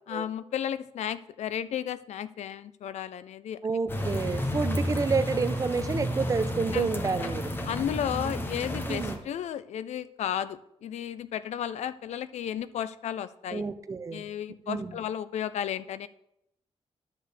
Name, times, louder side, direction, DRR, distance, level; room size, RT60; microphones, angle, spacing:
voice 1, 0.1-3.6 4.0-4.1 6.7-6.9 7.7-13.6 14.1-16.1, left 9 dB, 85° left, 15 dB, 0.4 m, -33 dB
voice 2, 3.6-7.5 8.9-9.2 13.5-14.2 14.7-14.9, right 4 dB, 30° right, 11 dB, 0.5 m, -29 dB
sound 1, 3.9-9.2, equal, 20° left, 0.8 m, -31 dB
11.5 x 6.6 x 3.4 m, 0.81 s
wide cardioid pair, 165°, 11 cm